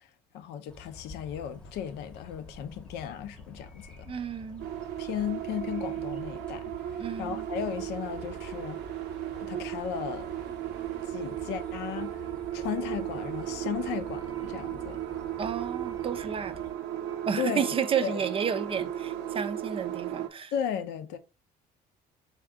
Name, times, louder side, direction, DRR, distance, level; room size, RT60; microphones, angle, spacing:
voice 1, 0.3-4.1 5.0-6.6 7.0-8.8 9.3-10.3 11.1-12.1 12.5-15.0 17.4-18.2 20.5-21.2, left 9 dB, 85° left, 0.5 m, -35 dB
sound 1, 0.7-16.7, left 3 dB, 5° left, 0.9 m, -49 dB
voice 2, 4.1-4.7 7.0-7.5 15.4-16.6 17.3-20.5, right 7 dB, 35° right, 0.4 m, -31 dB
sound 2, 4.6-20.3, right 12 dB, 85° right, 0.6 m, -35 dB
3.5 x 2.3 x 3.6 m
cardioid pair, 110°, 17 cm